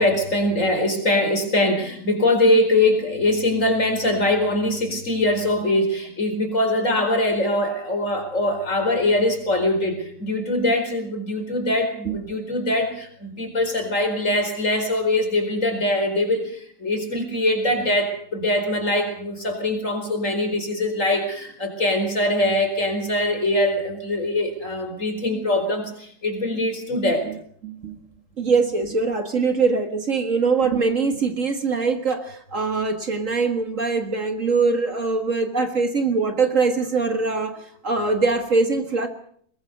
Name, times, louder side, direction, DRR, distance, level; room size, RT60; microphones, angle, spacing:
voice 1, 0.0-27.3, left 1 dB, 50° left, 4 dB, 4.9 m, -22 dB
voice 2, 27.6-28.0 28.4-39.1, right 4 dB, 50° right, 7 dB, 2.2 m, -22 dB
22.0 x 20.0 x 6.7 m, 0.62 s
omnidirectional pair, 1.8 m